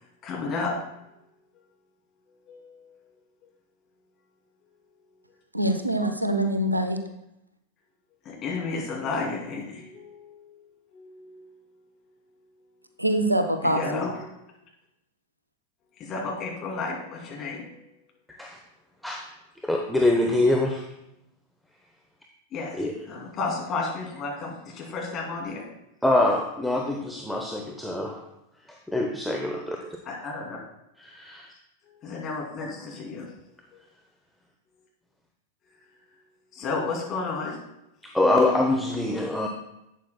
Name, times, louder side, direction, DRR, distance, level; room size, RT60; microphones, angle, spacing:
voice 1, 0.2-0.7 2.5-3.0 8.2-10.6 10.9-11.6 13.6-14.2 16.0-17.8 22.5-22.8 23.1-25.6 30.0-30.6 31.9-33.3 36.5-37.6, left 4 dB, 30° left, -2 dB, 2.6 m, -32 dB
voice 2, 5.5-7.0 13.0-14.0, right 1 dB, 85° right, 7 dB, 0.7 m, -24 dB
voice 3, 19.6-20.9 22.7-23.0 26.0-28.2 28.7-30.0 31.0-31.5 32.6-32.7 38.0-39.5, left 2 dB, ahead, 1 dB, 0.7 m, -25 dB
11.5 x 8.4 x 2.2 m, 0.86 s
figure-of-eight pair, 90°, 0 cm